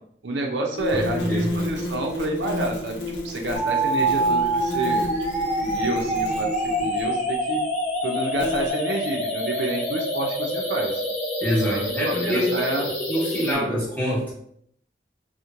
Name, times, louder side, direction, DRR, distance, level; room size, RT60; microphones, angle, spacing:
voice 1, 0.2-5.1 5.6-6.5 6.8-7.6 8.0-11.0 11.6-12.9 13.4-13.7, right 2 dB, 75° right, 2 dB, 0.5 m, -29 dB
sound 1, 0.8-7.1 8.4-8.7, left 1 dB, 90° left, 0.6 m, -31 dB
voice 2, 0.9-1.5 11.4-12.5 13.1-14.3, equal, 10° left, -8 dB, 1.0 m, -25 dB
sound 2, 3.6-13.6, right 1 dB, 40° left, 0.5 m, -26 dB
2.9 x 2.1 x 2.4 m, 0.66 s
head